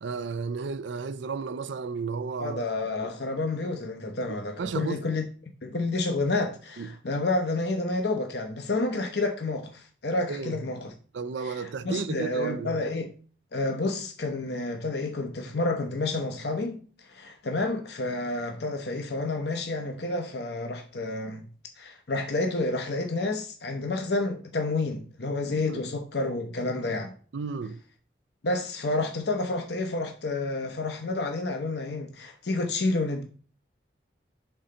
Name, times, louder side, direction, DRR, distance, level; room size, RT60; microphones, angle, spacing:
voice 1, 0.0-2.6 4.6-5.0 6.8-6.9 10.3-10.5 11.1-12.8 25.7-25.8 27.3-27.8, right 5 dB, 85° right, 0.5 m, -33 dB
voice 2, 2.4-5.2 5.6-10.9 11.4-13.1 13.5-21.5 21.8-27.1 28.4-33.2, left 2 dB, 70° left, 0.7 m, -29 dB
5.6 x 3.8 x 5.5 m
head